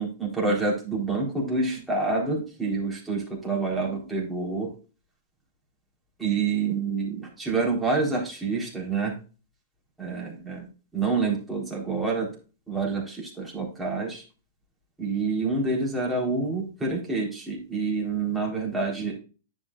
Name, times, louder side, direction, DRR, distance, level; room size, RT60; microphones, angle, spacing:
voice 1, 0.0-4.7 6.2-9.2 10.0-10.7 10.9-12.3 12.7-14.2 15.0-19.2, right 4 dB, 5° right, -4 dB, 4.0 m, -27 dB
10.0 x 7.6 x 2.5 m, 0.34 s
hypercardioid pair, 115°, 0 cm